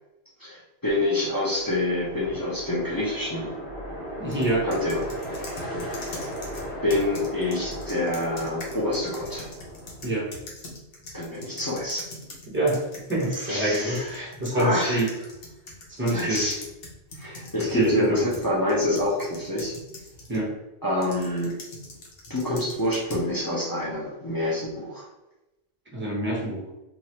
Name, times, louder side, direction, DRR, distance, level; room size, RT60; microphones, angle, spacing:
voice 1, 0.4-3.5 4.6-5.1 5.8-6.3 6.8-9.5 11.1-12.0 13.3-15.0 16.1-16.6 17.1-19.8 20.8-21.6 22.3-25.1, left 1 dB, 25° left, -5 dB, 0.5 m, -27 dB
sound 1, 1.2-10.3, equal, 50° left, 1.3 m, -36 dB
voice 2, 4.2-4.7 10.0-10.3 12.5-12.8 13.1-15.1 15.9-16.5 17.6-18.2 20.3-20.5 25.9-26.6, right 1 dB, 15° right, -3 dB, 0.6 m, -26 dB
sound 2, 4.3-13.5 13.7-20.4 21.0-23.3, left 1 dB, 65° left, 0.9 m, -43 dB
3.0 x 2.4 x 2.8 m, 0.97 s
omnidirectional pair, 1.1 m